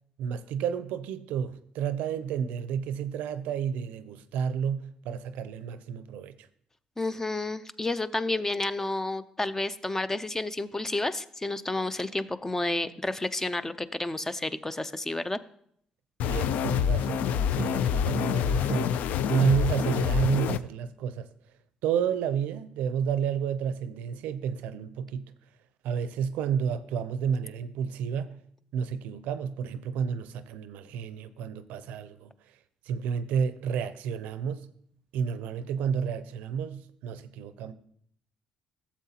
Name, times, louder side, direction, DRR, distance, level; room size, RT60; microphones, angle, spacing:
voice 1, 0.2-6.5 16.2-19.0 19.3-21.3 21.8-25.3 25.8-28.4 28.7-32.3 32.9-34.7 35.1-37.7, right 7 dB, 85° right, 0.5 m, -30 dB
voice 2, 7.0-15.4, left 2 dB, 15° left, 0.4 m, -30 dB
sound 1, 16.2-20.6, left 8 dB, 80° left, 0.3 m, -27 dB
12.5 x 7.3 x 2.8 m
cardioid pair, 80°, 3 cm